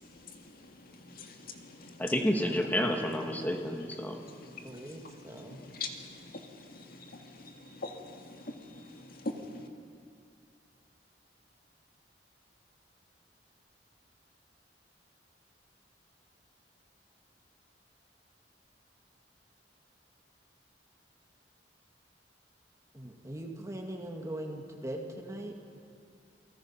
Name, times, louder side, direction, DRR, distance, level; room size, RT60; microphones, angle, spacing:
voice 1, 0.0-2.1 3.4-3.5 4.0-9.7, left 3 dB, 55° left, 3 dB, 2.0 m, -44 dB
voice 2, 2.0-4.2, left 1 dB, 10° left, 3 dB, 1.9 m, -30 dB
voice 3, 4.4-5.7 22.9-25.5, right 1 dB, 15° right, 2 dB, 2.2 m, -41 dB
28.5 x 19.5 x 5.8 m, 2.4 s
head